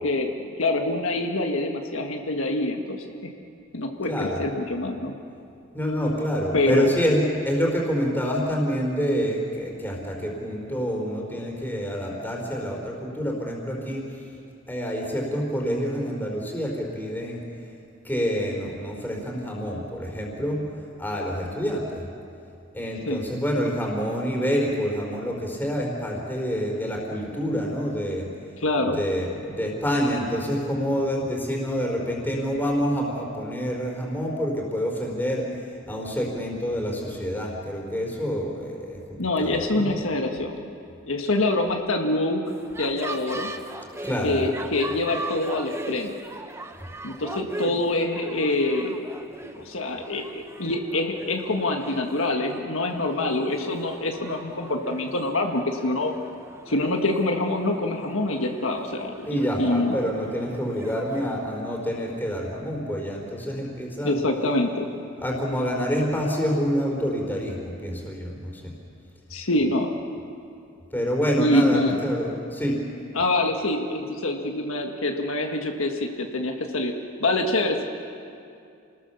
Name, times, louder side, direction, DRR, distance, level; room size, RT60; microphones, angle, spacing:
voice 1, 0.0-3.0 3.7-5.1 6.5-6.9 23.1-23.2 28.6-29.0 39.2-40.6 41.1-42.4 42.8-43.5 44.2-46.1 47.0-48.9 49.6-56.1 56.7-59.9 64.0-64.9 69.3-69.9 71.4-72.0 73.1-76.9 77.2-77.8, left 2 dB, 75° left, 3 dB, 1.7 m, -25 dB
voice 2, 4.0-4.4 5.7-14.1 14.7-17.4 18.0-20.6 21.0-22.1 22.7-28.3 28.9-35.5 35.9-39.9 44.0-44.4 59.3-64.2 65.2-68.7 70.9-72.8, equal, 10° left, -1 dB, 4.2 m, -27 dB
sound 1, 42.4-61.4, right 2 dB, 10° right, 0.8 m, -40 dB
29.0 x 20.0 x 7.1 m, 2.5 s
head